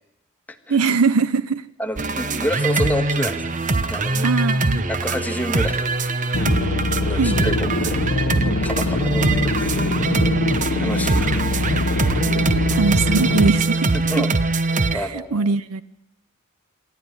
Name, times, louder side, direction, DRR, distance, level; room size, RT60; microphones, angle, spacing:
voice 1, 0.7-1.6 4.2-4.8 7.1-7.4 11.2-11.4 12.7-14.3 14.9-15.8, right 4 dB, 85° right, 0.7 m, -21 dB
voice 2, 1.8-3.5 3.9-4.3 4.9-5.9 7.0-8.3 8.6-10.1 10.7-11.4 12.0-12.1 13.9-14.3 14.9-15.5, equal, 10° left, 1.7 m, -29 dB
sound 1, 2.0-14.9, right 3 dB, 35° right, 1.0 m, -22 dB
sound 2, 6.3-13.5, left 2 dB, 65° left, 1.0 m, -23 dB
27.0 x 12.5 x 9.7 m
head